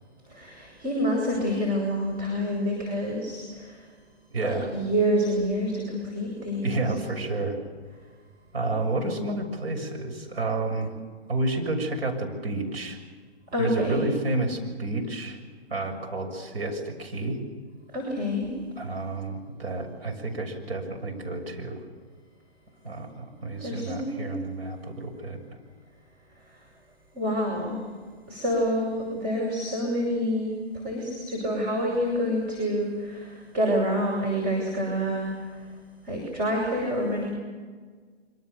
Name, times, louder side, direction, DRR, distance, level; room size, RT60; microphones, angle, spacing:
voice 1, 0.3-3.9 4.4-6.8 13.5-14.0 17.9-18.5 23.6-24.5 27.1-27.9 28.3-35.3 36.0-37.3, equal, 25° right, -2 dB, 7.5 m, -27 dB
voice 2, 4.3-4.7 6.6-7.6 8.5-10.9 11.3-13.0 13.6-15.4 15.7-17.4 18.8-21.8 22.8-25.4, right 2 dB, 65° right, 3 dB, 7.0 m, -30 dB
26.0 x 25.5 x 7.0 m, 1.5 s
hypercardioid pair, 135°, 33 cm